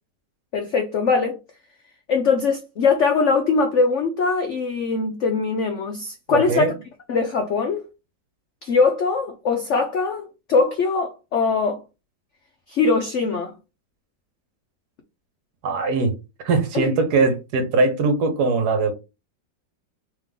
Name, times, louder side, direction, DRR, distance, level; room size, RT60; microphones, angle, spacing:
voice 1, 0.5-1.4 2.1-6.7 7.1-7.8 8.6-11.8 12.7-13.5 16.7-16.9, left 4 dB, 80° left, 0.6 m, -21 dB
voice 2, 6.3-6.7 15.6-16.1 16.4-18.9, right 3 dB, 65° right, 1.4 m, -21 dB
3.6 x 3.2 x 3.5 m
omnidirectional pair, 2.0 m